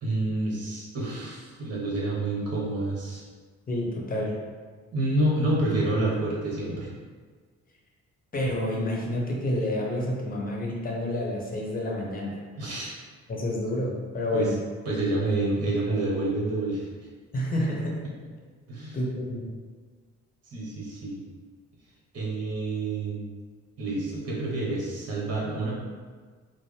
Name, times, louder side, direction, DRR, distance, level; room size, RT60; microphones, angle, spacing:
voice 1, 0.0-3.2 4.9-6.9 12.6-12.9 14.3-14.5 14.8-16.9 18.7-19.0 20.5-21.2 22.1-23.2 23.8-25.7, right 2 dB, 55° right, -4 dB, 1.3 m, -28 dB
voice 2, 3.7-4.4 8.3-12.4 13.3-14.5 17.3-18.0 18.9-19.5, left 1 dB, 30° left, -2 dB, 0.9 m, -29 dB
4.4 x 2.0 x 3.3 m, 1.5 s
cardioid pair, 90°, 30 cm